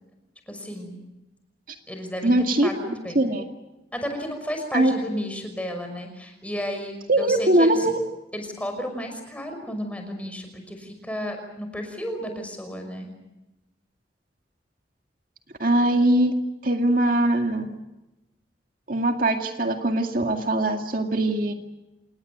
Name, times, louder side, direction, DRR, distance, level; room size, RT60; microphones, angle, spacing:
voice 1, 0.5-1.0 1.9-2.3 2.6-3.3 3.9-7.9 8.3-13.1, equal, 10° left, 5 dB, 5.8 m, -33 dB
voice 2, 2.2-2.7 3.2-3.4 4.7-4.9 7.1-8.0 15.6-16.3 16.6-17.7 18.9-21.5, right 1 dB, 50° right, 4 dB, 2.2 m, -21 dB
28.0 x 20.0 x 8.0 m, 0.97 s
head